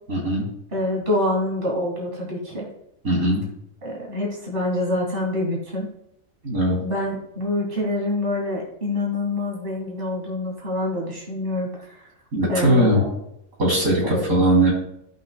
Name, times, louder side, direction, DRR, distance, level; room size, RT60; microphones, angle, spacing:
voice 1, 0.1-0.5 3.0-3.4 6.4-6.8 12.3-13.0 13.6-14.7, right 1 dB, 80° right, -4 dB, 3.4 m, -19 dB
voice 2, 0.7-2.7 3.8-5.9 6.8-12.1 12.5-13.1 14.0-14.2, left 1 dB, 40° right, -3 dB, 2.6 m, -26 dB
17.0 x 5.8 x 2.2 m, 0.77 s
omnidirectional pair, 1.5 m